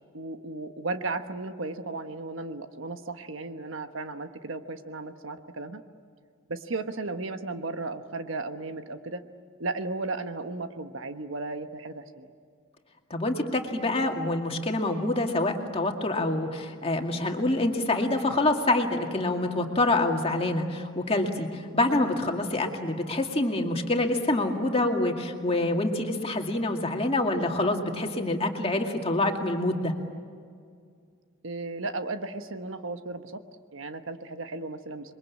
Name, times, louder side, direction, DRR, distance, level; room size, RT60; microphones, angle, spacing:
voice 1, 0.1-5.8 6.5-9.2 9.6-12.3 31.4-33.3 33.7-35.2, right 3 dB, 70° right, 8 dB, 1.3 m, -35 dB
voice 2, 13.1-29.9, left 2 dB, 30° left, 3 dB, 2.2 m, -26 dB
28.0 x 22.5 x 8.5 m, 2.1 s
head